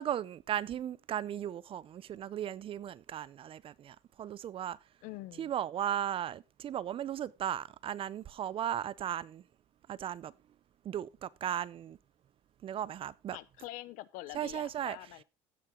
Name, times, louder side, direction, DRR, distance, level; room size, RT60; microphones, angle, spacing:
voice 1, 0.0-4.8 5.4-9.4 9.9-10.3 10.8-12.0 12.6-13.4 14.3-15.0, right 10 dB, 40° right, 0.5 m, -36 dB
voice 2, 5.0-5.5 13.3-15.2, left 17 dB, 70° left, 0.8 m, -45 dB
16.0 x 5.9 x 3.6 m
supercardioid pair, 105°, 15 cm